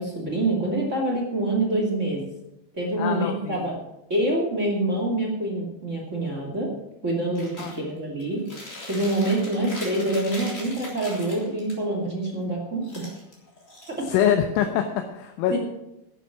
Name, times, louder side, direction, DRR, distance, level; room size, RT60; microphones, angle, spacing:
voice 1, 0.0-2.3 2.7-3.8 4.1-6.7 7.0-8.4 8.9-13.0 14.0-14.1 15.5-15.6, right 1 dB, 30° right, -1 dB, 1.4 m, -26 dB
voice 2, 3.0-3.7 7.6-7.7 14.1-15.6, left 9 dB, 80° left, 4 dB, 3.3 m, -24 dB
Chewing mastication, 7.3-7.8 8.2-11.7 12.8-14.3, left 1 dB, 20° left, 3.1 m, -40 dB
11.0 x 9.8 x 7.1 m, 0.87 s
omnidirectional pair, 5.5 m